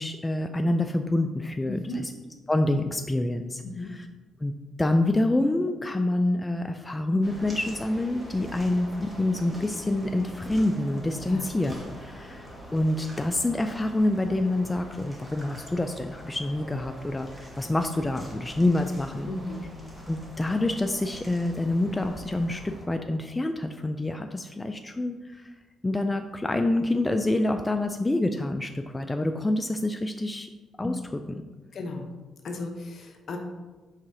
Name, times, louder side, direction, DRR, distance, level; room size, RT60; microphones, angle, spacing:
voice 1, 0.0-2.1 2.5-3.6 3.9-4.1 4.4-19.3 20.1-25.5 25.8-30.5 30.8-31.4, left 1 dB, 15° left, 6 dB, 0.3 m, -27 dB
voice 2, 1.7-2.0 3.7-3.9 11.2-11.5 19.3-19.6 31.7-32.1 32.4-33.4, left 2 dB, 55° left, 3 dB, 1.0 m, -35 dB
sound 1, 7.2-22.9, equal, ahead, 1.6 m, -44 dB
4.9 x 3.6 x 5.7 m, 1.2 s
cardioid pair, 90°, 0 cm